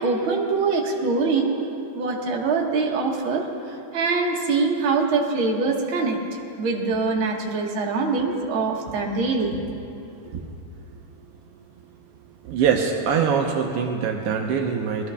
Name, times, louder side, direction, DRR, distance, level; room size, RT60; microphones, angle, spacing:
voice 1, 0.0-6.2 6.6-9.6 10.3-10.4, right 4 dB, 50° right, 0 dB, 1.7 m, -24 dB
voice 2, 12.4-15.1, right 6 dB, 80° right, 2 dB, 1.3 m, -23 dB
19.5 x 13.5 x 3.4 m, 2.7 s
omnidirectional pair, 3.6 m